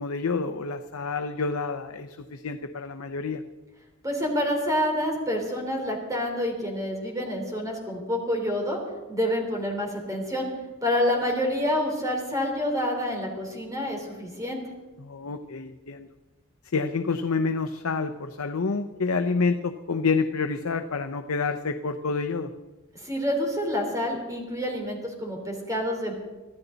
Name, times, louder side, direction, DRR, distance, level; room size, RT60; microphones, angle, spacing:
voice 1, 0.0-3.4 15.0-16.1 16.7-22.5, left 4 dB, 70° left, 7 dB, 0.7 m, -28 dB
voice 2, 4.0-8.8 9.1-10.5 10.8-14.6 22.9-26.1, left 1 dB, 15° right, 1 dB, 3.8 m, -28 dB
24.5 x 14.5 x 4.0 m, 1.2 s
head